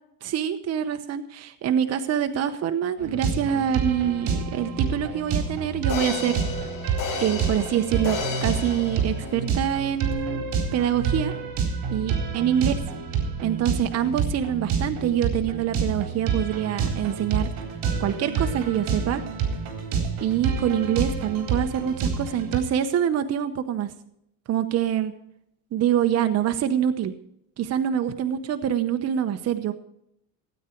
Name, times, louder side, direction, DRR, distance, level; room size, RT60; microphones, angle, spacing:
voice 1, 0.2-6.4 7.2-10.4 10.7-11.3 11.9-12.7 13.4-17.5 18.0-19.2 20.2-23.9 24.5-25.1 25.7-27.1 27.6-29.7, right 10 dB, 40° right, 8 dB, 1.0 m, -25 dB
sound 1, 3.0-22.6, right 5 dB, 60° right, 4.1 m, -28 dB
sound 2, 5.2-5.3 5.9-9.6 10.1-10.2, left 5 dB, 55° left, 6.8 m, -33 dB
17.0 x 9.1 x 4.5 m, 0.75 s
cardioid pair, 120°, 38 cm